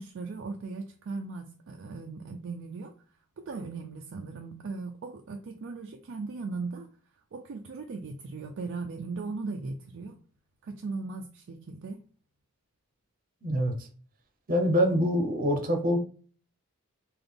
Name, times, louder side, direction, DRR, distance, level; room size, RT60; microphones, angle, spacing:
voice 1, 0.0-2.9 3.4-6.9 7.3-10.2 10.6-12.0, right 4 dB, 60° right, 0.4 m, -38 dB
voice 2, 13.4-13.9 14.5-16.0, equal, 40° right, 0.8 m, -25 dB
3.9 x 2.4 x 3.4 m
head